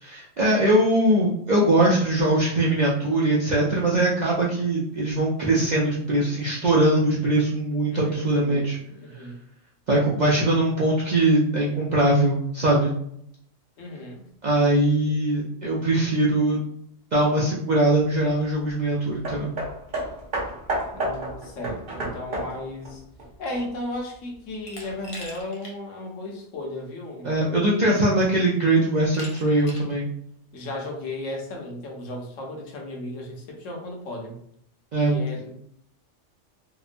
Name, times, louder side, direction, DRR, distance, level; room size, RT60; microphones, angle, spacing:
voice 1, 0.0-8.8 9.9-12.9 14.4-16.6 17.1-19.5 27.2-30.1 34.9-35.2, right 1 dB, 85° right, -5 dB, 0.3 m, -21 dB
voice 2, 7.9-9.4 13.8-14.2 20.9-23.0 23.4-27.3 30.5-34.4 35.0-35.5, left 1 dB, 75° left, 1 dB, 1.0 m, -35 dB
Hammer, 19.2-24.0 24.8-24.9, right 1 dB, 50° right, 0.9 m, -31 dB
Glass, 24.7-25.8 26.2-26.3 27.4-27.5 28.0-28.4 29.1-30.0, left 1 dB, 50° left, 0.4 m, -41 dB
2.8 x 2.1 x 2.4 m, 0.69 s
omnidirectional pair, 1.3 m